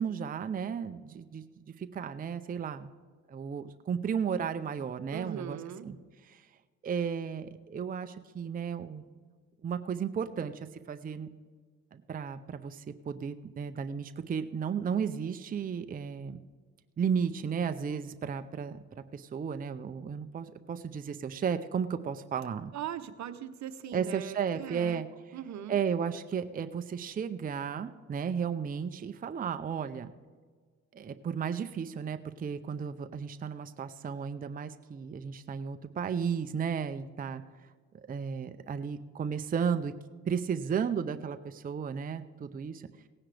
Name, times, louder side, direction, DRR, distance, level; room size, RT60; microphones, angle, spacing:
voice 1, 0.0-1.4 1.8-2.9 3.3-5.6 5.8-6.0 6.3-6.4 6.8-9.0 9.6-11.3 11.9-16.4 17.0-18.8 19.1-22.7 23.9-25.4 25.7-30.1 30.9-37.4 38.1-39.9 40.3-42.9, right 7 dB, 30° right, 9 dB, 0.5 m, -34 dB
voice 2, 5.1-5.9 22.7-25.0 25.3-25.7, right 10 dB, 65° right, 11 dB, 0.9 m, -40 dB
17.5 x 9.8 x 3.3 m, 1.5 s
cardioid pair, 95°, 30 cm